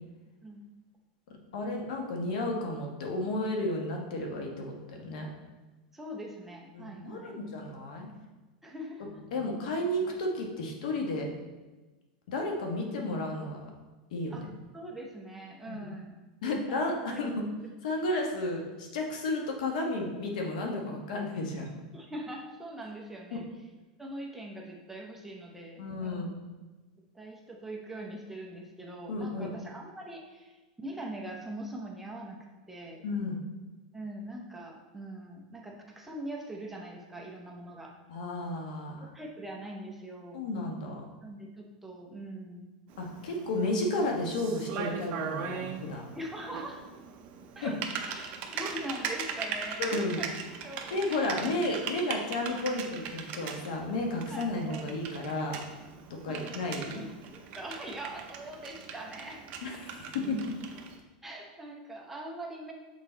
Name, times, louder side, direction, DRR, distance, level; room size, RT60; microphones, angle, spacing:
voice 1, 1.5-5.3 6.7-8.1 9.3-11.3 12.3-13.6 14.1-14.5 15.7-15.9 16.4-17.4 17.8-21.8 23.3-23.4 25.8-26.3 29.1-29.5 33.0-33.4 38.1-39.0 40.3-41.0 43.0-46.0 47.6-47.7 49.8-50.2 50.9-55.6 56.2-57.0 59.6-60.4, left 2 dB, 75° left, 1 dB, 1.3 m, -32 dB
voice 2, 5.9-7.3 8.6-9.1 14.3-14.4 14.7-16.1 16.4-17.2 21.9-23.5 24.0-26.3 27.1-32.4 32.7-33.0 33.9-37.9 39.0-40.4 41.2-42.7 46.1-46.8 47.6-47.8 48.1-50.3 50.6-51.3 54.3-54.8 56.3-56.6 56.9-57.1 57.5-59.4 61.2-62.7, right 1 dB, 5° right, 0 dB, 0.8 m, -42 dB
Typing, 42.9-61.0, right 6 dB, 40° right, 0.7 m, -40 dB
6.4 x 3.8 x 4.0 m, 1.2 s
supercardioid pair, 140°, 4 cm